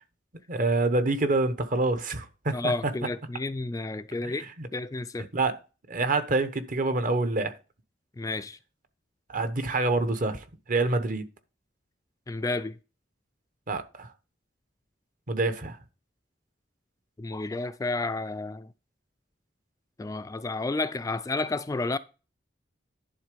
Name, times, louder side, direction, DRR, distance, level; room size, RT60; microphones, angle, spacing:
voice 1, 0.5-2.7 4.2-4.7 5.3-5.6 5.9-7.5 9.3-11.2 13.7-14.1 15.3-15.8, right 2 dB, 50° right, 1.0 m, -27 dB
voice 2, 2.5-4.4 4.7-5.3 8.2-8.6 12.3-12.8 17.2-18.7 20.0-22.0, left 3 dB, 20° left, 0.3 m, -31 dB
11.0 x 3.8 x 5.1 m
head